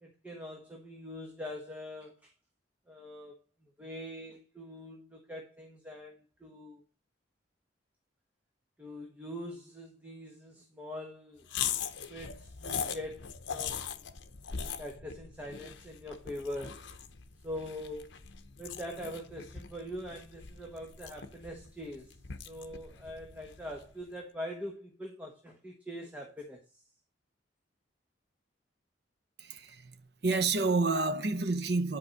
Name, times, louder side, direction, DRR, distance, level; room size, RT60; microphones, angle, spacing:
voice 1, 0.0-2.3 2.9-3.4 3.8-6.8 8.8-11.5 12.1-14.0 14.8-16.8 17.4-18.1 18.6-22.2 22.5-26.8, left 1 dB, 10° right, 1.2 m, -43 dB
sound 1, 11.5-23.9, left 7 dB, 75° left, 0.9 m, -41 dB
voice 2, 29.4-32.0, right 3 dB, 55° right, 0.8 m, -29 dB
11.0 x 4.7 x 5.8 m
head